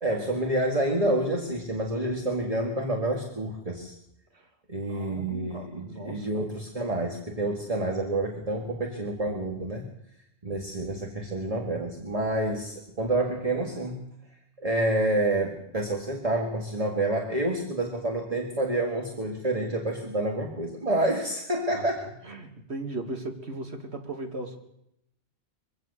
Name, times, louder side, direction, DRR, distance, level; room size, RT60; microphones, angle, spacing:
voice 1, 0.0-3.9 4.7-9.9 10.4-14.1 14.6-22.1, right 1 dB, 30° right, 2 dB, 2.0 m, -28 dB
voice 2, 4.8-6.5 21.7-21.9 22.2-24.6, right 2 dB, 65° right, 4 dB, 2.6 m, -37 dB
23.0 x 16.5 x 6.9 m, 0.80 s
omnidirectional pair, 1.2 m